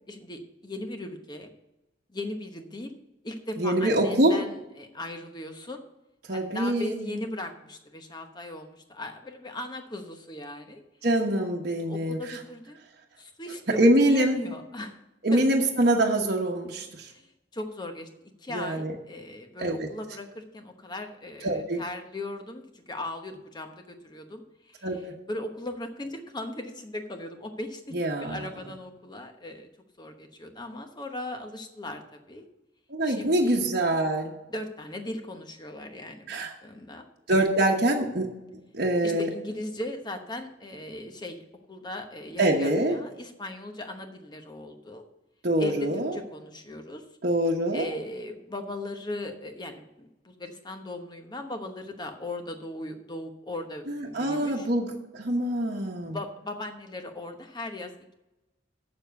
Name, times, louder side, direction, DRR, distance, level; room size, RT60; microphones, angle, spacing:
voice 1, 0.1-1.5 2.1-3.0 3.2-5.8 6.3-10.8 11.9-12.8 13.2-15.0 15.3-15.4 17.1-18.1 18.4-25.0 25.3-29.7 30.0-32.5 33.0-33.6 34.5-37.1 39.0-45.0 45.6-47.0 47.7-54.7 56.1-57.9, left 1 dB, 25° left, 5 dB, 1.0 m, -38 dB
voice 2, 3.6-4.4 6.3-7.2 11.0-12.2 13.8-14.4 15.2-17.1 18.5-18.9 19.6-19.9 21.4-21.8 24.8-25.0 27.9-28.4 32.9-34.3 36.3-36.5 37.3-39.3 42.4-42.9 45.4-46.2 47.2-47.9 53.9-54.9 55.1-56.2, right 1 dB, 55° right, -2 dB, 1.1 m, -24 dB
7.2 x 7.0 x 7.9 m, 0.97 s
head